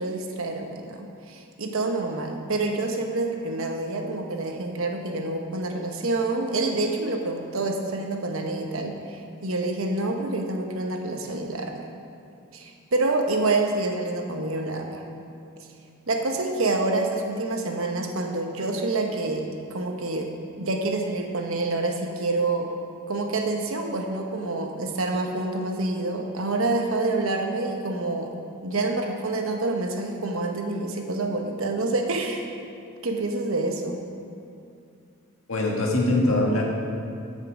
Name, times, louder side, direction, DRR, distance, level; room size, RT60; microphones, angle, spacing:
voice 1, 0.0-11.8 12.5-15.0 16.1-20.3 20.6-22.7 23.1-28.4 28.6-32.5 33.0-34.0, right 2 dB, 75° right, 3 dB, 1.0 m, -27 dB
voice 2, 35.5-36.6, left 2 dB, 70° left, -2 dB, 1.7 m, -22 dB
13.0 x 5.6 x 4.9 m, 2.4 s
head